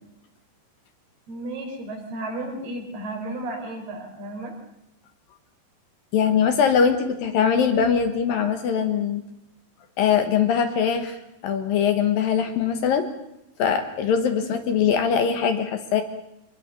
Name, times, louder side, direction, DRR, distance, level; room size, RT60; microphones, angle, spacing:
voice 1, 1.3-4.5, right 2 dB, 70° right, 2 dB, 6.2 m, -33 dB
voice 2, 6.1-9.2 10.0-11.2 11.4-13.0 13.6-16.0, left 7 dB, 65° left, 7 dB, 2.9 m, -22 dB
25.0 x 20.5 x 6.9 m, 0.84 s
omnidirectional pair, 4.8 m